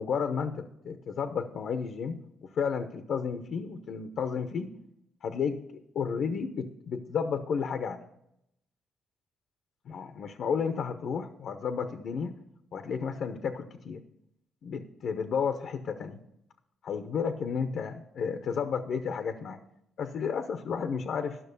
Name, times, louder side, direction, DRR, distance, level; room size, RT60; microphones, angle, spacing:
voice 1, 0.0-2.2 2.5-4.7 5.2-5.6 5.9-8.0 9.9-12.3 12.7-14.0 14.6-16.2 16.8-19.6 20.0-21.4, left 6 dB, 65° left, 8 dB, 0.8 m, -32 dB
12.5 x 6.0 x 6.8 m, 0.79 s
cardioid pair, 90°, 0 cm